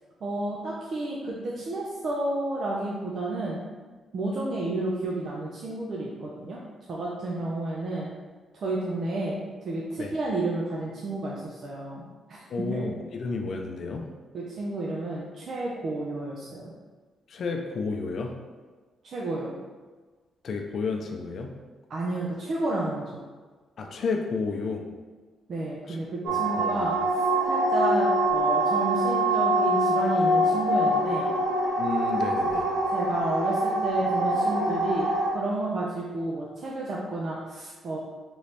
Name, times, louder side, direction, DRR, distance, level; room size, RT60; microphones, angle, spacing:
voice 1, 0.2-3.6 4.1-6.6 6.9-8.1 8.5-12.0 12.3-12.4 12.7-12.8 14.3-16.7 19.0-19.6 21.9-23.2 25.5-26.9 27.5-31.3 32.9-38.0, right 2 dB, 50° right, -4 dB, 0.6 m, -31 dB
voice 2, 12.5-14.1 17.3-18.3 20.4-21.5 23.8-24.8 25.9-26.9 31.8-32.7, left 4 dB, 55° left, 3 dB, 0.5 m, -31 dB
sound 1, 26.3-35.3, right 1 dB, 80° right, 1.0 m, -24 dB
4.0 x 3.0 x 3.2 m, 1.4 s
cardioid pair, 115°, 0 cm